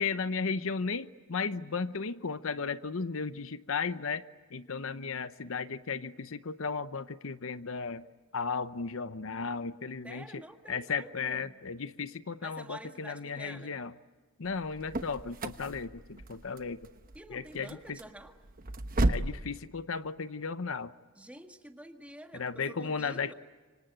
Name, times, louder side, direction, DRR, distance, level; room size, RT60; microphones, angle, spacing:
voice 1, 0.0-4.2 4.5-8.0 8.3-10.4 10.7-13.9 14.4-16.9 17.3-18.0 19.1-20.9 22.3-23.3, left 5 dB, 65° left, 13 dB, 0.8 m, -35 dB
voice 2, 10.0-11.5 12.4-13.8 17.2-18.4 21.2-23.3, right 1 dB, 5° right, 5 dB, 1.7 m, -48 dB
sound 1, 14.5-19.4, right 1 dB, 40° right, 1.0 m, -34 dB
26.5 x 25.0 x 8.8 m, 1.4 s
head